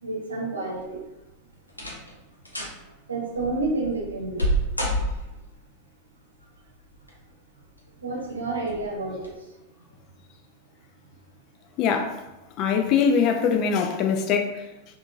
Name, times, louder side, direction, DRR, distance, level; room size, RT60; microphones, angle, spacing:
voice 1, 0.0-1.0 3.1-4.4 8.0-9.3, right 2 dB, 80° right, -4 dB, 0.9 m, -29 dB
sound 1, 0.8-1.2 1.7-2.1 2.4-2.8 3.3-5.5 6.7-7.3 7.8-7.9 8.6-8.8 9.2-9.3, right 1 dB, 85° left, 0.6 m, -29 dB
voice 2, 11.8-12.2 12.6-14.6, left 6 dB, 40° left, 5 dB, 0.3 m, -22 dB
2.7 x 2.5 x 2.6 m, 0.99 s
figure-of-eight pair, 90°, 0 cm